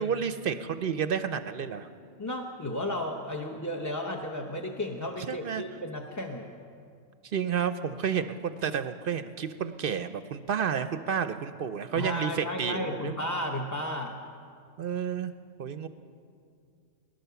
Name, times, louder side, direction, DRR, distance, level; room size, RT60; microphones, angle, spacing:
voice 1, 0.0-1.9 5.3-5.6 7.2-13.2 14.8-15.3 15.6-15.9, right 7 dB, 60° right, 11 dB, 0.6 m, -31 dB
voice 2, 2.2-6.5 11.9-14.1, left 1 dB, 20° left, 1 dB, 0.6 m, -33 dB
19.5 x 10.5 x 6.9 m, 2.4 s
omnidirectional pair, 1.3 m